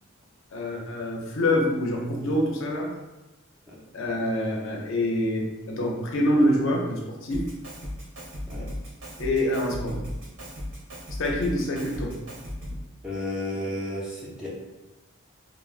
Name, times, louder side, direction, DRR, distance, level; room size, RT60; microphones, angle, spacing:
voice 1, 0.5-2.9 3.9-7.5 9.2-10.0 11.2-12.1, left 1 dB, 65° left, -1 dB, 0.5 m, -26 dB
Drum kit, 7.3-12.9, equal, 65° right, 1.1 m, -36 dB
voice 2, 13.0-14.5, left 1 dB, 5° right, -7 dB, 0.4 m, -32 dB
3.2 x 2.0 x 2.4 m, 1.1 s
head